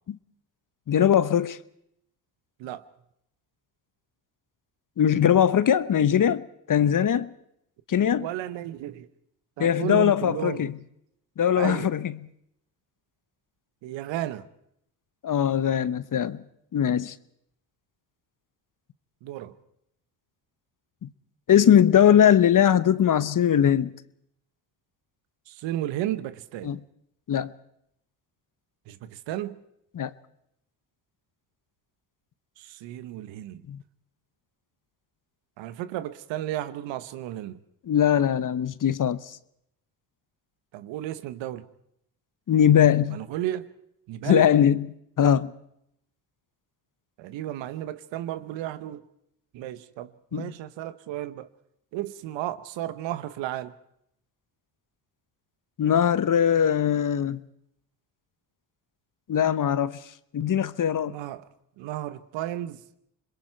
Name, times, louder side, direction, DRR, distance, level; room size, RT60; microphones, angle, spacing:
voice 1, 0.9-1.6 5.0-7.3 7.9-8.3 9.6-10.8 11.4-12.1 15.2-16.4 16.7-17.1 21.0-21.1 21.5-23.9 26.6-26.8 27.3-27.5 29.9-30.1 33.7-33.8 37.9-39.4 42.5-43.2 44.2-44.9 45.2-45.5 50.3-50.5 55.8-57.4 59.3-60.0 60.3-61.2, left 9 dB, 45° left, 1.0 m, -21 dB
voice 2, 8.2-9.1 9.6-10.7 11.6-11.9 13.8-14.4 19.2-19.5 25.5-26.7 28.9-29.6 32.6-33.6 35.6-37.6 40.7-41.7 43.1-43.7 44.1-44.5 47.2-49.0 49.5-51.5 51.9-53.7 61.1-61.5 61.8-62.8, right 13 dB, 80° right, 1.2 m, -33 dB
27.0 x 21.5 x 4.6 m
supercardioid pair, 60°, 44 cm